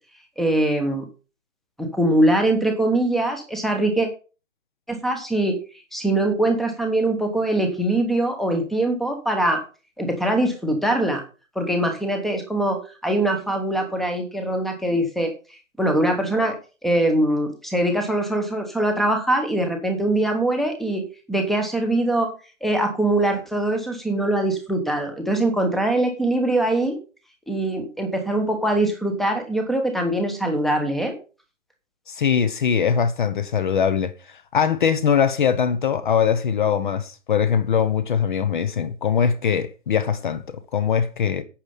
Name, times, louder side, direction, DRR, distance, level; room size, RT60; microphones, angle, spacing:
voice 1, 0.4-1.1 1.8-4.1 4.9-5.6 5.9-9.6 10.0-11.2 11.5-15.3 15.8-16.6 16.8-21.0 21.3-22.3 22.6-27.0 27.5-31.1, right 1 dB, ahead, 1.0 m, -22 dB
voice 2, 32.1-40.4 40.7-41.4, left 7 dB, 35° left, 1.0 m, -21 dB
8.9 x 8.4 x 5.5 m
figure-of-eight pair, 145°, 41 cm